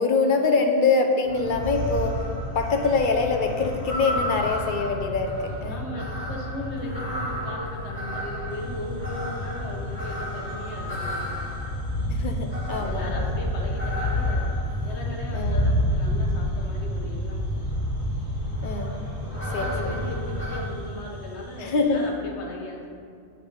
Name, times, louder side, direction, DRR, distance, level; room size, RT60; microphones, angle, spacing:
voice 1, 0.0-2.2 2.5-5.3 5.6-5.8 12.1-13.3 15.3-15.6 18.6-18.9 19.5-20.1 21.6-22.0, left 4 dB, 55° left, 4 dB, 0.7 m, -24 dB
sound 1, 1.2-20.6, left 1 dB, 10° left, 1.7 m, -29 dB
voice 2, 5.7-11.3 12.8-17.4 19.3-22.9, left 1 dB, 80° left, -1 dB, 1.3 m, -37 dB
sound 2, 8.5-22.1, left 1 dB, 60° right, 1.8 m, -45 dB
7.9 x 3.5 x 5.4 m, 2.4 s
omnidirectional pair, 1.1 m